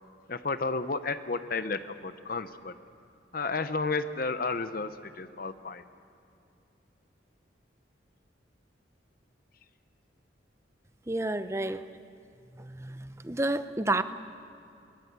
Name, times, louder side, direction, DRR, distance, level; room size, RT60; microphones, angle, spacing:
voice 1, 0.3-2.7 3.3-5.8, left 3 dB, 50° left, 11 dB, 0.7 m, -32 dB
voice 2, 11.1-11.8 12.6-14.0, right 2 dB, 15° right, 11 dB, 0.7 m, -30 dB
23.0 x 20.5 x 8.2 m, 2.7 s
head